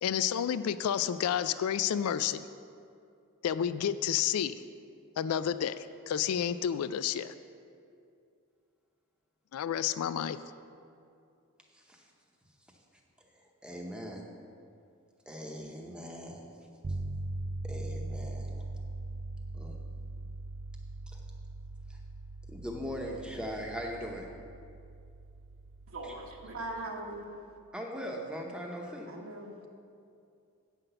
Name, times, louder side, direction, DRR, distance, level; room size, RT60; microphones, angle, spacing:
voice 1, 0.0-2.4 3.4-4.5 5.2-7.3 9.5-10.4, left 9 dB, 80° left, 14 dB, 0.3 m, -30 dB
voice 2, 13.6-14.3 15.3-16.5 17.6-18.7 19.5-19.8 21.1-21.2 21.9-22.0 22.5-24.3 26.0-26.2 27.7-29.1, equal, 5° right, 0 dB, 0.8 m, -40 dB
sound 1, 16.8-27.0, right 2 dB, 35° right, 0.3 m, -41 dB
voice 3, 25.9-27.3 29.1-29.5, right 2 dB, 70° right, 1 dB, 1.2 m, -40 dB
8.9 x 5.8 x 6.7 m, 2.4 s
head